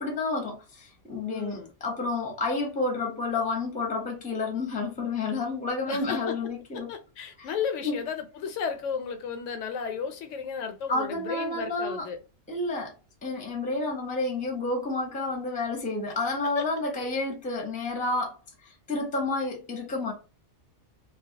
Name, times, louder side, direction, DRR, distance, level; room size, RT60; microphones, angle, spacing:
voice 1, 0.0-6.9 7.4-7.5 7.8-8.0 10.9-12.1 12.5-12.9 13.2-18.4 18.6-20.1, left 3 dB, 10° left, 0.5 m, -30 dB
voice 2, 1.3-1.7 5.9-6.3 6.7-12.2 16.4-16.6, left 6 dB, 85° left, 0.9 m, -34 dB
2.3 x 2.0 x 2.7 m
omnidirectional pair, 1.2 m